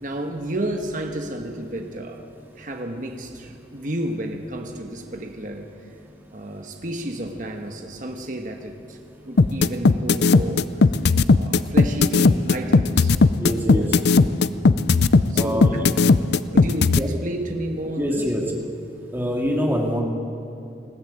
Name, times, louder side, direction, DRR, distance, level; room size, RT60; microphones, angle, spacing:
voice 1, 0.0-2.2 2.6-5.7 6.3-9.0 9.2-10.9 11.4-13.1 13.7-13.8 15.3-15.9 16.5-18.3, right 1 dB, 45° right, 3 dB, 1.3 m, -31 dB
sound 1, 9.4-17.0, left 4 dB, 60° left, 0.5 m, -16 dB
voice 2, 13.4-14.0 15.3-15.7 17.0-17.1 18.0-18.4 19.1-20.0, equal, 10° right, -1 dB, 2.5 m, -24 dB
20.5 x 14.5 x 8.8 m, 2.7 s
head